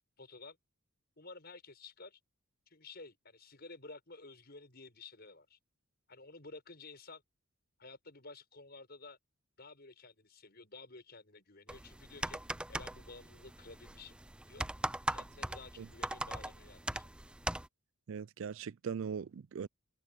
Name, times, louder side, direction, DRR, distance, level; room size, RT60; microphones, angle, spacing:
voice 1, 0.2-0.6 1.2-2.2 2.7-5.6 6.1-7.2 7.8-9.2 9.6-12.4 12.7-14.2 14.5-14.7 15.1-17.1, left 3 dB, 50° left, 7.0 m, -52 dB
sound 1, 11.7-17.7, right 1 dB, 5° right, 0.4 m, -40 dB
voice 2, 18.1-19.7, right 6 dB, 70° right, 0.4 m, -40 dB
head